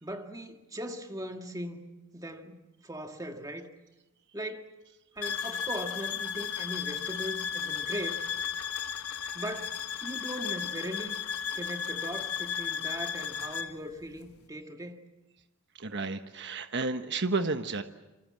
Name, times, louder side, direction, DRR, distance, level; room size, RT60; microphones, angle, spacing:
voice 1, 0.0-1.8 2.1-3.7 4.3-4.8 5.2-8.2 9.3-9.7 10.0-11.1 11.5-15.0, equal, 15° right, 1.9 m, -39 dB
sound 1, 5.2-13.7, left 8 dB, 80° left, 1.4 m, -34 dB
voice 2, 15.8-17.8, right 3 dB, 55° right, 1.2 m, -31 dB
28.0 x 24.0 x 7.6 m
head